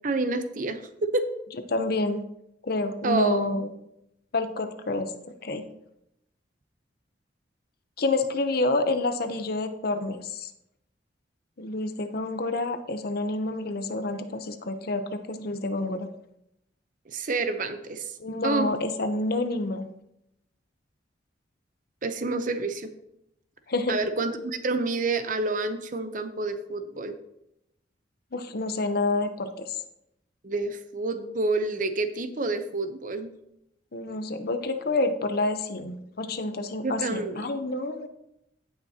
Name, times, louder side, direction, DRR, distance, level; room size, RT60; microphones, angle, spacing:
voice 1, 0.0-1.3 3.0-3.6 17.1-18.1 18.4-18.7 22.0-22.9 23.9-27.2 30.4-33.3 36.8-37.5, right 3 dB, 45° right, 9 dB, 0.7 m, -28 dB
voice 2, 1.7-2.2 2.6-3.7 4.3-5.1 5.4-5.6 8.0-10.5 11.6-16.1 18.2-19.9 23.7-24.0 28.3-29.8 33.9-38.1, left 2 dB, 55° left, 8 dB, 0.7 m, -28 dB
16.5 x 5.9 x 2.8 m, 0.82 s
head